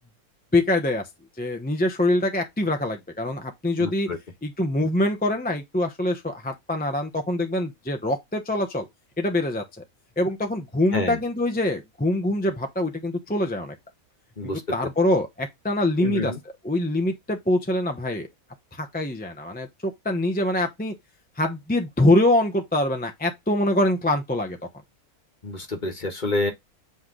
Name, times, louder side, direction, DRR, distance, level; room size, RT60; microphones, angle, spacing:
voice 1, 0.5-1.0 1.4-4.1 4.4-8.9 9.2-9.8 10.2-13.7 14.4-16.3 16.6-18.3 18.7-20.9 21.4-24.6, left 1 dB, 10° left, 0.7 m, -24 dB
voice 2, 3.8-4.2 10.9-11.2 14.4-14.6 16.0-16.4 25.4-26.5, left 2 dB, 35° left, 1.4 m, -28 dB
8.0 x 3.2 x 3.8 m
omnidirectional pair, 1.6 m